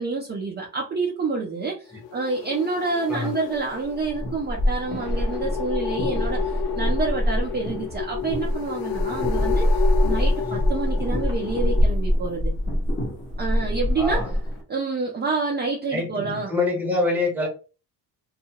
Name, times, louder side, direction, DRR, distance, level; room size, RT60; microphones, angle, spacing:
voice 1, 0.0-9.7 10.0-12.5 13.4-14.3 14.7-16.5, right 4 dB, 25° right, 0.6 m, -28 dB
sound 1, 1.9-11.8, left 9 dB, 85° left, 0.5 m, -32 dB
sound 2, 3.8-14.6, equal, 30° left, 1.0 m, -24 dB
voice 2, 14.0-14.3 15.9-17.5, left 3 dB, 5° right, 0.9 m, -25 dB
2.7 x 2.4 x 2.8 m
cardioid pair, 110°, 42 cm